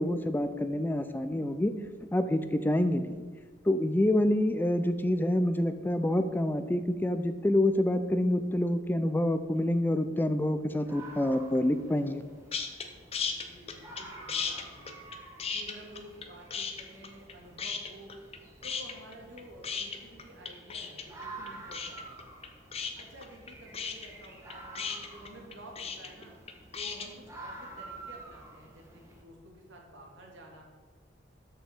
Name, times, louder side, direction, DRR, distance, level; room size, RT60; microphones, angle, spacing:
voice 1, 0.0-1.7 2.1-3.2 3.7-12.2, left 1 dB, 10° left, 10 dB, 0.4 m, -27 dB
sound 1, 10.8-29.2, right 2 dB, 15° right, 1.4 m, -49 dB
sound 2, 12.5-12.9 13.1-14.0 14.3-16.3 16.5-17.3 17.6-18.4 18.6-27.1, left 6 dB, 30° left, 0.8 m, -35 dB
voice 2, 13.2-14.9 15.5-18.1 18.6-22.3 22.9-26.3 26.7-30.6, right 1 dB, 75° right, 0 dB, 2.2 m, -51 dB
13.0 x 5.7 x 4.4 m, 1.5 s
head